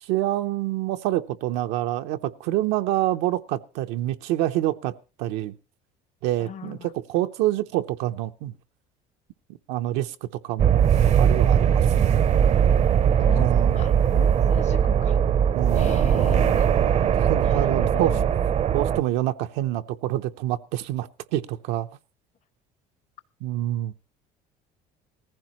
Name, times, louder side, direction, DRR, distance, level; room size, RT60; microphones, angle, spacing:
voice 1, 0.0-5.6 6.2-8.5 9.7-10.8 11.2-12.3 13.2-13.8 15.5-16.0 17.0-18.2 18.7-21.9 23.4-23.9, right 14 dB, 85° right, 0.7 m, -27 dB
voice 2, 6.4-6.9 13.1-15.2 15.8-16.7 17.4-18.2, left 9 dB, 40° left, 0.8 m, -39 dB
sound 1, 10.6-19.0, right 8 dB, 40° right, 0.6 m, -20 dB
18.0 x 15.0 x 3.0 m
cardioid pair, 120°, 18 cm